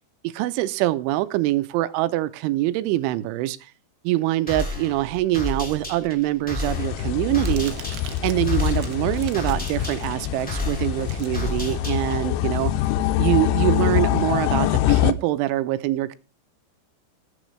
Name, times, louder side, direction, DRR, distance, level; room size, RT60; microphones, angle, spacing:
voice 1, 0.2-3.7 4.0-7.7 8.2-12.7 13.2-16.2, right 16 dB, 90° right, 3.2 m, -24 dB
sound 1, 4.5-12.3, left 1 dB, 5° left, 1.3 m, -33 dB
Crumpling crinkling, 6.4-12.9, right 11 dB, 75° right, 2.6 m, -45 dB
sound 2, 6.7-15.1, left 13 dB, 85° left, 3.0 m, -24 dB
20.0 x 7.0 x 3.1 m
omnidirectional pair, 5.3 m